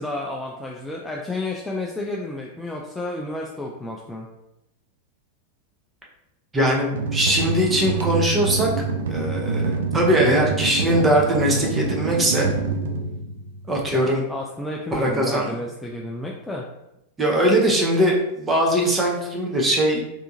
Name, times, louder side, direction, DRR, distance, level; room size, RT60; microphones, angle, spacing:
voice 1, 0.0-4.3 13.9-16.7, left 1 dB, 5° left, -1 dB, 0.4 m, -31 dB
voice 2, 6.5-12.5 13.7-14.2 14.9-15.5 17.2-20.0, right 1 dB, 15° right, -2 dB, 0.8 m, -21 dB
sound 1, 6.9-13.8, right 4 dB, 60° right, 0.4 m, -26 dB
3.3 x 2.7 x 2.7 m, 0.88 s
figure-of-eight pair, 90°, 0 cm